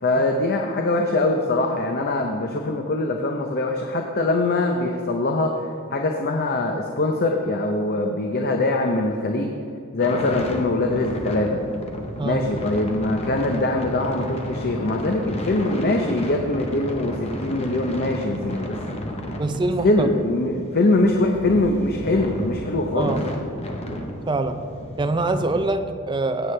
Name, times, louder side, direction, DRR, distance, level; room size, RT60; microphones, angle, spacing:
voice 1, 0.0-9.5 9.9-11.6 12.2-18.8 19.8-23.1, left 2 dB, 45° left, 3 dB, 0.7 m, -23 dB
sound 1, 10.0-25.6, left 1 dB, 30° left, 1.0 m, -33 dB
voice 2, 19.4-20.1 22.9-23.4 24.3-24.6 25.0-26.5, right 2 dB, 20° right, 7 dB, 0.5 m, -24 dB
16.5 x 8.1 x 3.3 m, 2.3 s
head